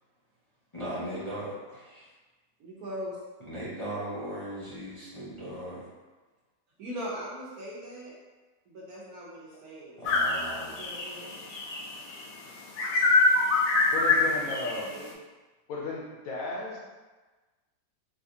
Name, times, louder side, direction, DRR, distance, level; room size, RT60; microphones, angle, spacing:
voice 1, 0.7-2.1 3.5-5.9 10.0-10.8, right 1 dB, 25° left, -10 dB, 0.7 m, -38 dB
voice 2, 2.6-3.2 6.8-8.1 8.7-10.1 10.6-11.4 14.0-15.1, equal, 65° right, -6 dB, 1.2 m, -40 dB
sound 1, 10.1-12.2 12.8-14.8, left 3 dB, 85° left, 1.2 m, -24 dB
voice 3, 13.9-14.9 15.7-16.8, left 3 dB, 70° left, -4 dB, 0.9 m, -34 dB
4.0 x 2.4 x 2.7 m, 1.3 s
omnidirectional pair, 1.8 m